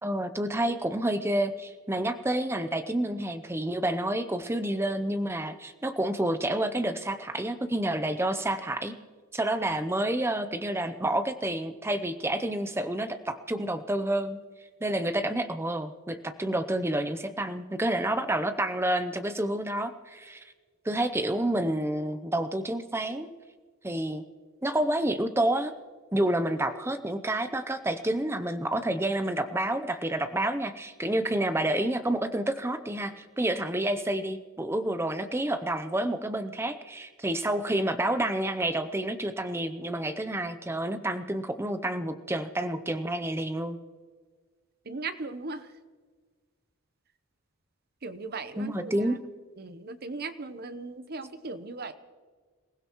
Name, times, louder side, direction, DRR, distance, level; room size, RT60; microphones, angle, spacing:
voice 1, 0.0-8.9 9.3-14.4 14.8-20.4 20.8-23.3 23.8-24.2 24.6-25.7 26.1-43.8 48.6-49.2, right 1 dB, 10° right, 9 dB, 0.6 m, -29 dB
voice 2, 44.9-45.6 48.0-48.9 49.6-51.9, right 3 dB, 45° right, 10 dB, 0.9 m, -37 dB
28.0 x 16.0 x 3.1 m, 1.5 s
head